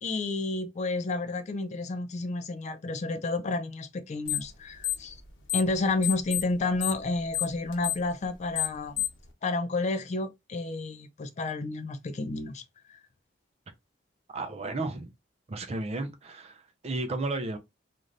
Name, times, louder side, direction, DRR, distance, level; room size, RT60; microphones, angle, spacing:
voice 1, 0.0-5.2 5.5-9.0 9.4-12.6 12.9-13.0, left 2 dB, 40° left, 0.3 m, -31 dB
sound 1, 4.2-4.5 4.8-5.7 6.0-9.3, left 15 dB, 75° left, 0.9 m, -30 dB
voice 2, 14.3-15.1 15.5-17.6, right 2 dB, 35° right, 0.4 m, -33 dB
3.2 x 2.5 x 2.5 m
head